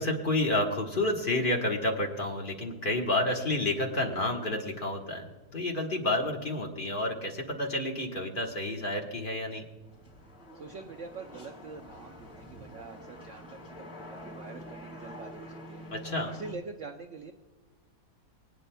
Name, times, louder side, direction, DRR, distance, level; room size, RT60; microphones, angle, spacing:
voice 1, 0.0-9.7 15.9-16.3, left 1 dB, 35° left, 1 dB, 1.4 m, -30 dB
sound 1, 9.8-16.5, equal, 55° left, 3.7 m, -46 dB
voice 2, 10.5-15.8 16.3-17.3, right 4 dB, 60° right, 4 dB, 0.8 m, -45 dB
24.5 x 9.4 x 2.3 m, 1.3 s
omnidirectional pair, 1.7 m